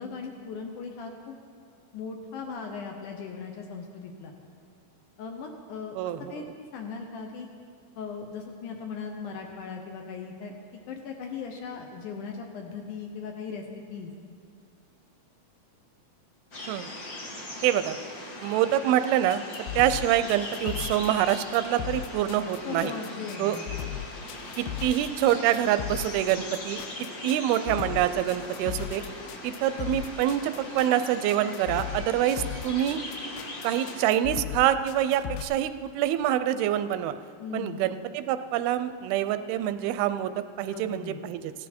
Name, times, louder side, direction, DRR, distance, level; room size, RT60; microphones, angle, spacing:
voice 1, 0.0-1.4 1.9-4.3 5.2-6.0 6.3-7.5 8.0-10.5 10.9-13.6 13.9-14.1 22.6-23.7 37.4-37.8 40.7-41.2, left 5 dB, 75° left, 3 dB, 2.0 m, -38 dB
voice 2, 6.0-6.4 16.7-16.9 17.6-18.0 18.4-19.4 19.8-22.9 23.4-23.6 24.6-26.8 27.2-29.0 29.4-33.0 33.6-37.1 37.5-41.5, right 11 dB, 90° right, 12 dB, 2.5 m, -26 dB
sound 1, 16.5-34.1, left 1 dB, 50° left, 1.0 m, -40 dB
sound 2, 19.3-35.4, left 13 dB, 90° left, 2.5 m, -37 dB
15.5 x 11.5 x 4.3 m, 2.3 s
omnidirectional pair, 4.3 m